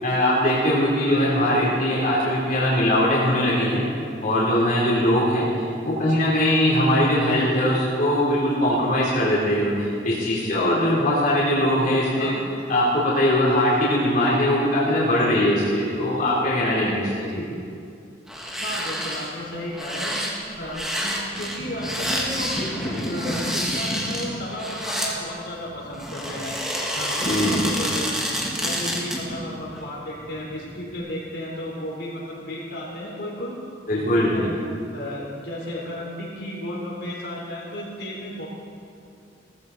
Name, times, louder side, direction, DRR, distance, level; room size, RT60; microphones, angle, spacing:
voice 1, 0.0-3.8 4.2-12.3 12.7-17.3 27.2-27.6 33.9-34.4, left 1 dB, 45° left, -7 dB, 3.6 m, -21 dB
sound 1, 18.3-19.3 19.7-25.1 25.9-29.3 29.7-29.8, equal, 5° right, 1.8 m, -28 dB
voice 2, 18.6-20.2 20.6-22.6 23.0-28.1 28.6-33.6 34.0-34.5 34.9-38.5, left 1 dB, 65° left, -4 dB, 3.8 m, -33 dB
sound 2, 21.3-31.0, equal, 25° left, 2.9 m, -34 dB
18.0 x 15.0 x 4.2 m, 2.4 s
head